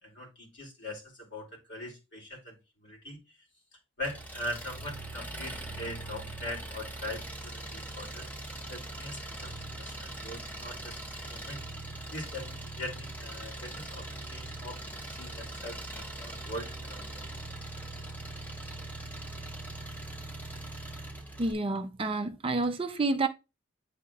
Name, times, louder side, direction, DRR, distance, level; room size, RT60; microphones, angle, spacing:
voice 1, 0.0-3.5 3.7-8.3 8.7-11.6 12.1-17.2, left 1 dB, 50° left, 2.8 m, -42 dB
Engine, 4.0-21.5, right 2 dB, 5° left, 1.0 m, -41 dB
voice 2, 21.4-23.3, right 3 dB, 25° right, 0.4 m, -29 dB
9.8 x 4.1 x 2.4 m
head